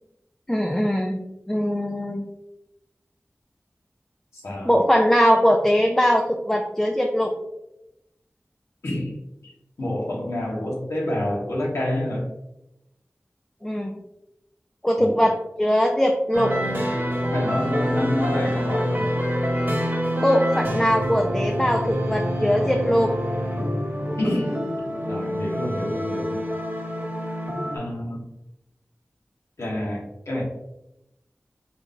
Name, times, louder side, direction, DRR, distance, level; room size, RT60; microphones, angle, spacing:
voice 1, 0.5-1.2 1.5-2.3 4.6-7.3 13.6-14.0 14.8-15.3 15.6-16.5 20.2-23.2, equal, 10° left, 2 dB, 0.5 m, -21 dB
voice 2, 4.3-4.7 8.8-9.1 9.4-9.5 9.8-12.2 15.0-15.2 17.3-19.1 24.2-24.6 25.1-26.4 27.7-28.3 29.6-30.4, left 1 dB, 85° left, -4 dB, 1.4 m, -28 dB
Electronic bells and chords, 16.3-27.8, equal, 45° right, 1.5 m, -26 dB
4.6 x 3.7 x 2.7 m, 0.89 s
wide cardioid pair, 45°, 5 cm